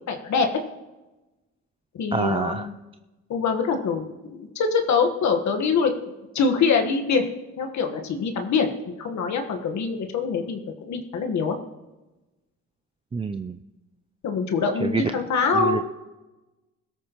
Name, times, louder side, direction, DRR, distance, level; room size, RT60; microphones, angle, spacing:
voice 1, 0.1-0.5 1.9-2.7 3.3-5.9 6.3-7.3 7.6-11.5 14.2-15.9, left 5 dB, 65° left, 5 dB, 1.4 m, -24 dB
voice 2, 2.1-2.7 13.1-13.6 14.8-15.1 15.5-15.8, right 5 dB, 20° right, 9 dB, 0.4 m, -27 dB
21.0 x 13.0 x 3.0 m, 1.1 s
cardioid pair, 90°, 30 cm